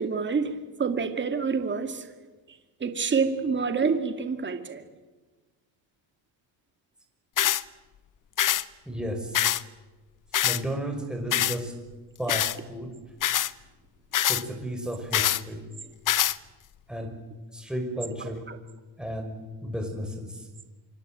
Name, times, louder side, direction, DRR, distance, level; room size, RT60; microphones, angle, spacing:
voice 1, 0.0-2.1 2.8-4.8 15.2-15.3 18.5-18.6, right 5 dB, 25° right, 7 dB, 2.3 m, -27 dB
sound 1, 7.4-7.6 8.4-8.6 9.3-9.6 10.3-10.6 11.3-11.6 12.3-12.6 13.2-13.5 14.1-14.4 15.1-15.4 16.1-16.4, left 12 dB, 45° left, 1.0 m, -24 dB
voice 2, 8.9-9.5 10.4-11.7 12.2-12.9 14.3-15.7 16.9-17.2 17.5-18.5 19.0-20.5, equal, ahead, 3 dB, 5.8 m, -33 dB
26.0 x 24.5 x 9.1 m, 1.3 s
cardioid pair, 120°, 45 cm